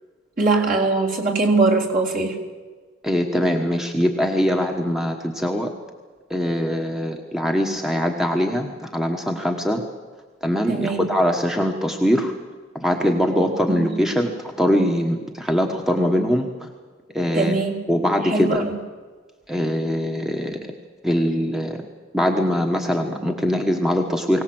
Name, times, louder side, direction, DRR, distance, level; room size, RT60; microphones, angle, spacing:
voice 1, 0.4-2.4 10.7-11.1 13.7-13.9 17.3-17.9 18.2-18.8, right 3 dB, 45° right, -1 dB, 3.7 m, -21 dB
voice 2, 3.0-5.7 6.3-9.8 10.4-12.3 12.7-16.7 17.1-17.6 17.9-18.6 19.5-20.6 21.0-21.8 22.1-24.4, equal, ahead, 3 dB, 1.3 m, -22 dB
23.0 x 18.0 x 7.9 m, 1.4 s
head